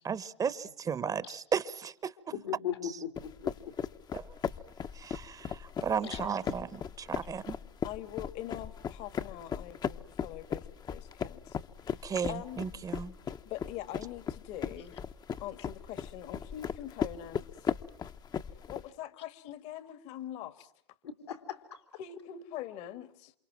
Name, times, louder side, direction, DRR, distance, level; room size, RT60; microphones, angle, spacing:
voice 1, 0.0-2.1 2.8-2.9 4.1-4.3 4.9-7.6 12.0-13.1, right 7 dB, 25° right, 1.1 m, -35 dB
voice 2, 2.3-3.8 6.1-6.2 21.0-21.8, left 9 dB, 80° left, 3.7 m, -38 dB
sound 1, 3.2-18.8, left 7 dB, 30° left, 1.0 m, -37 dB
voice 3, 7.8-11.6 11.9-12.0 12.3-12.6 13.4-15.0 15.4-17.7 18.7-20.7 22.0-23.3, left 12 dB, 55° left, 1.9 m, -43 dB
28.5 x 27.5 x 6.0 m
hypercardioid pair, 90°, 14 cm